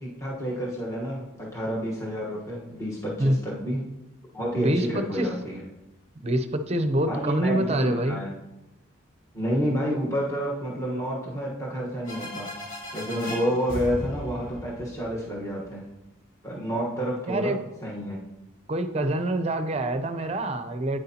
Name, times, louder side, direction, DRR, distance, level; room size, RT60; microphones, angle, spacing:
voice 1, 0.0-3.8 4.3-5.6 7.1-8.3 9.3-12.5 12.9-15.8 16.4-17.6 17.8-18.2, equal, 15° left, -5 dB, 1.2 m, -29 dB
voice 2, 4.6-5.3 6.2-8.2 17.3-17.6 18.7-21.0, right 1 dB, 30° right, 8 dB, 0.5 m, -26 dB
sound 1, 12.0-15.7, equal, 40° left, 2.1 m, -37 dB
9.0 x 8.0 x 2.8 m, 0.96 s
head